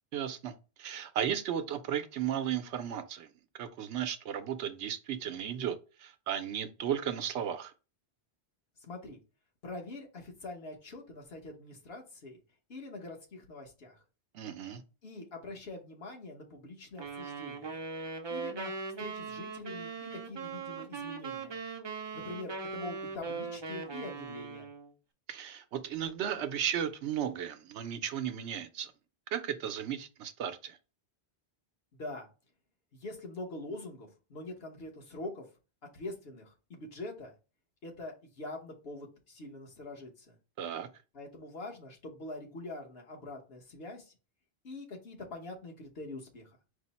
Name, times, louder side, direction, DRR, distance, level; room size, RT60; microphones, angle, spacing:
voice 1, 0.1-3.3 3.6-7.7 14.3-14.8 25.3-28.9 29.3-30.8 40.6-40.9, right 9 dB, 80° right, 0.9 m, -35 dB
voice 2, 8.8-9.2 9.6-12.4 12.7-14.0 15.0-17.8 18.3-18.7 19.0-21.6 22.1-24.7 31.9-32.3 32.9-35.4 35.9-37.3 37.8-40.3 41.1-44.1 44.6-46.5, left 2 dB, 60° left, 1.3 m, -44 dB
sound 1, 17.0-24.9, right 4 dB, 40° right, 0.4 m, -40 dB
5.0 x 2.0 x 4.0 m
omnidirectional pair, 1.1 m